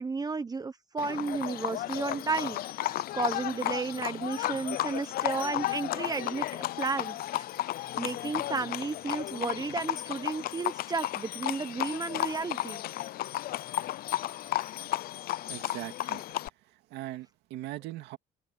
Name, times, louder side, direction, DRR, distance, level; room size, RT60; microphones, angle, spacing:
voice 1, 0.0-7.5 8.0-12.8, right 4 dB, 20° right, 1.2 m, -33 dB
Livestock farm animals working animals, 1.0-16.5, left 14 dB, 60° left, 0.5 m, -33 dB
voice 2, 15.4-18.2, right 16 dB, 85° right, 2.3 m, -41 dB
cardioid pair, 110°, 17 cm